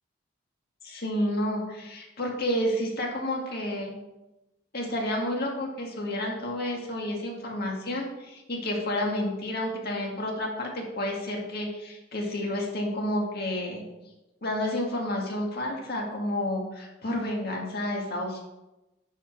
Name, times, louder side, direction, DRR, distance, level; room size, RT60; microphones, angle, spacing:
voice 1, 0.8-3.9 4.7-13.8 14.4-18.4, left 1 dB, 55° left, 0 dB, 2.0 m, -30 dB
10.5 x 4.9 x 4.7 m, 0.98 s
head